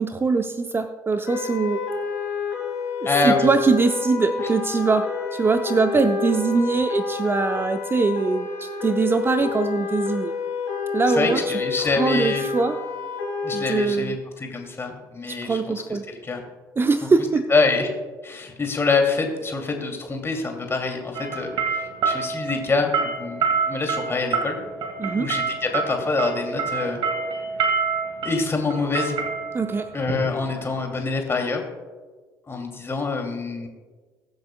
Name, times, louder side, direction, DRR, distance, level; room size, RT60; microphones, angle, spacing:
voice 1, 0.0-1.8 3.0-5.0 5.3-10.3 10.9-11.4 11.8-12.8 13.5-14.2 15.3-16.0 16.8-17.5 25.0-25.3 29.5-29.9, right 4 dB, 25° right, 9 dB, 0.7 m, -22 dB
sound 1, 1.3-13.8, left 5 dB, 85° left, 3.3 m, -29 dB
voice 2, 3.0-3.5 11.1-12.4 13.4-15.6 15.9-16.0 16.2-16.4 17.5-17.9 18.2-24.6 25.1-27.0 28.2-29.2 29.9-31.6 32.5-33.7, left 3 dB, 25° left, 3 dB, 2.6 m, -25 dB
sound 2, 21.1-31.0, right 5 dB, 55° right, 2.2 m, -27 dB
22.0 x 7.9 x 2.3 m, 1.4 s
figure-of-eight pair, 50°, 9 cm